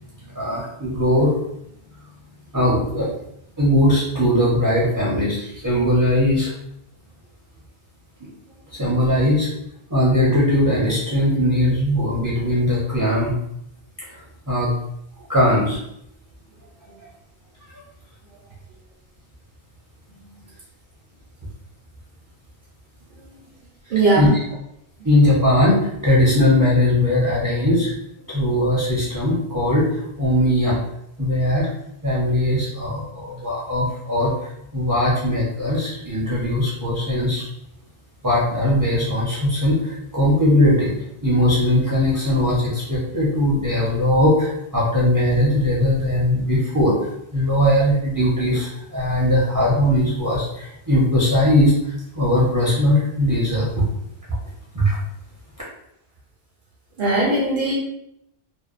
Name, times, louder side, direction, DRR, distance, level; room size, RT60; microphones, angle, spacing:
voice 1, 0.2-1.3 2.5-3.1 3.6-6.5 8.2-8.3 8.7-9.5 9.9-13.4 14.1-14.7 15.3-15.8 24.2-24.3 25.0-27.9 28.3-30.8 31.2-31.7 32.0-37.4 38.2-40.9 41.2-51.7 52.1-53.8 54.7-55.0, left 1 dB, 25° right, -7 dB, 0.5 m, -19 dB
voice 2, 23.9-24.4 31.3-31.5 57.0-57.7, right 2 dB, 60° right, -5 dB, 0.7 m, -21 dB
2.7 x 2.1 x 2.4 m, 0.77 s
omnidirectional pair, 1.1 m